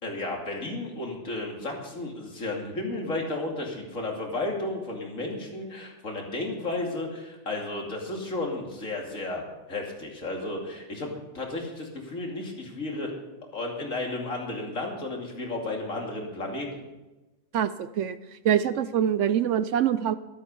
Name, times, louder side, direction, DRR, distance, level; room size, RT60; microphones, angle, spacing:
voice 1, 0.0-9.4 9.7-13.1 13.5-16.7, left 2 dB, 65° left, 0 dB, 3.1 m, -33 dB
voice 2, 17.5-18.2 18.4-20.2, right 9 dB, 65° right, 14 dB, 0.9 m, -24 dB
13.0 x 13.0 x 5.5 m, 1.1 s
omnidirectional pair, 1.4 m